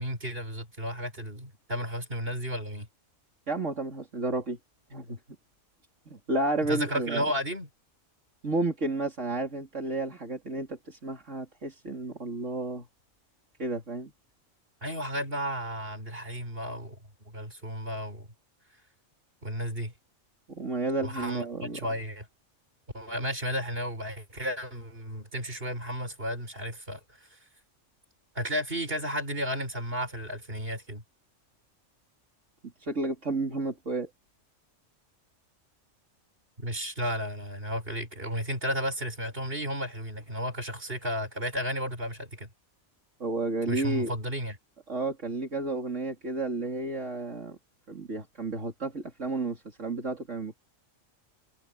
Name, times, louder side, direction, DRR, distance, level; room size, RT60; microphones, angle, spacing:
voice 1, 0.0-2.9 6.7-7.7 14.8-17.0 17.3-18.3 19.4-19.9 21.0-22.3 22.9-27.0 28.3-31.0 36.6-42.5 43.7-44.6, equal, 45° right, 6.5 m, -33 dB
voice 2, 3.5-4.6 4.9-5.2 6.1-7.3 8.4-12.9 13.6-14.1 20.5-21.9 32.8-34.1 43.2-44.1 44.9-47.6 47.9-50.6, right 2 dB, 70° right, 3.5 m, -31 dB
omnidirectional pair, 1.3 m